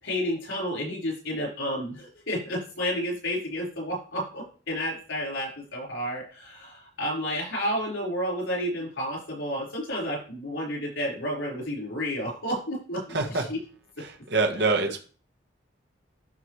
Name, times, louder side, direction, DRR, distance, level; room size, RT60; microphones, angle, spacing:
voice 1, 0.0-13.6 14.6-14.7, equal, 85° left, -2 dB, 4.8 m, -31 dB
voice 2, 13.1-13.5 14.0-15.0, right 3 dB, 60° right, 4 dB, 1.3 m, -25 dB
12.0 x 5.1 x 3.2 m, 0.38 s
head